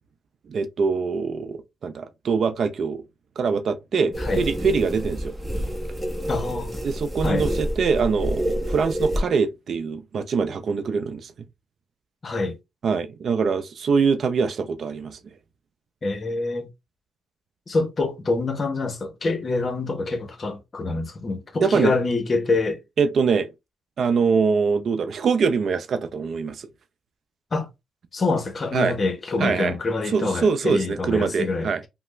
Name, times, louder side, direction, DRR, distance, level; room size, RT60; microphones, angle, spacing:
voice 1, 0.5-3.0 3.4-5.3 6.8-11.3 12.8-15.2 21.6-21.9 23.0-23.5 24.0-26.7 28.7-29.0 29.4-29.8 30.1-31.8, right 5 dB, 55° right, 0.4 m, -23 dB
sound 1, 4.1-9.2, equal, 15° right, 0.9 m, -28 dB
voice 2, 6.3-6.7 7.2-7.6 12.2-12.6 16.0-16.7 17.7-22.8 27.5-27.7 28.1-31.7, left 3 dB, 35° left, 0.8 m, -26 dB
3.2 x 2.0 x 3.1 m
cardioid pair, 90°, 0 cm